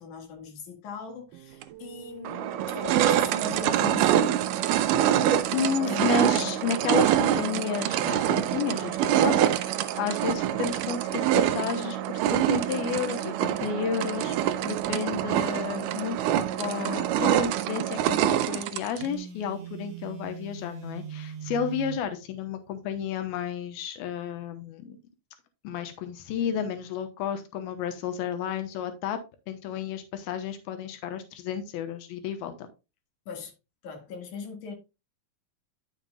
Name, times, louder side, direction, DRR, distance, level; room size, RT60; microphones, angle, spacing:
voice 1, 0.0-4.5 5.9-6.1 6.3-6.5 15.2-15.5 33.3-33.5 33.8-34.7, left 5 dB, 60° left, 3.2 m, -39 dB
sound 1, 1.6-1.7 2.2-19.1, right 11 dB, 80° right, 1.9 m, -25 dB
voice 2, 5.5-16.2 16.6-25.0 25.6-29.2 29.5-32.5, left 7 dB, 90° left, 2.8 m, -32 dB
Telephone, 19.0-22.1, right 7 dB, 60° right, 2.0 m, -40 dB
10.0 x 7.4 x 2.3 m
omnidirectional pair, 4.2 m